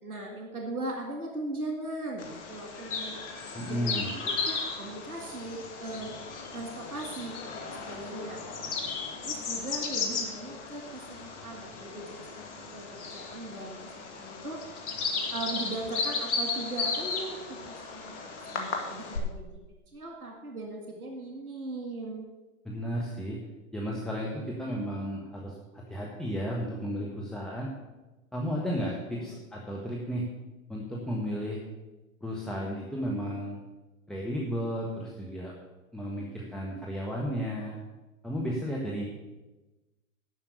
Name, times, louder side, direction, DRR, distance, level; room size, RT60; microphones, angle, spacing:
voice 1, 0.0-3.2 3.6-6.2 6.5-8.4 9.2-14.6 15.3-19.6 19.9-22.3 29.1-29.4, right 2 dB, 90° right, 1 dB, 2.2 m, -39 dB
Bird vocalization bird call bird song, 2.2-19.2, left 4 dB, 55° left, 2.3 m, -35 dB
voice 2, 3.5-4.1 22.6-23.4 23.7-27.7 28.3-30.3 30.7-31.6 32.2-33.5 34.1-35.5 35.9-37.8 38.2-39.0, equal, ahead, -3 dB, 1.6 m, -33 dB
11.5 x 5.7 x 8.2 m, 1.1 s
figure-of-eight pair, 105°, 43 cm